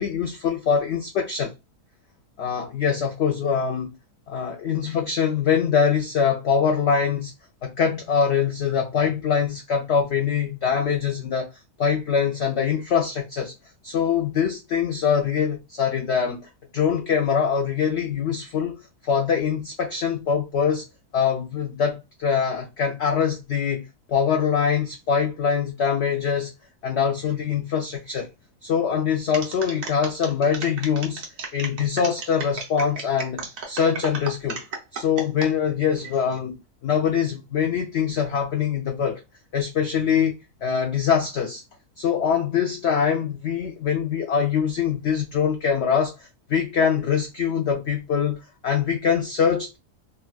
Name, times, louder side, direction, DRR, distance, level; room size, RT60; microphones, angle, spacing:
voice 1, 0.0-1.5 2.4-4.0 4.3-7.3 7.6-11.5 11.8-13.5 13.8-18.8 19.0-20.9 21.1-26.5 26.8-28.3 28.6-31.2 31.5-34.6 34.9-36.6 36.8-39.2 39.5-40.3 40.6-41.6 42.0-49.8, left 7 dB, 85° left, 0.5 m, -23 dB
sound 1, 29.3-35.5 36.0-36.4, right 4 dB, 60° right, 1.1 m, -34 dB
3.9 x 2.2 x 2.2 m
omnidirectional pair, 1.7 m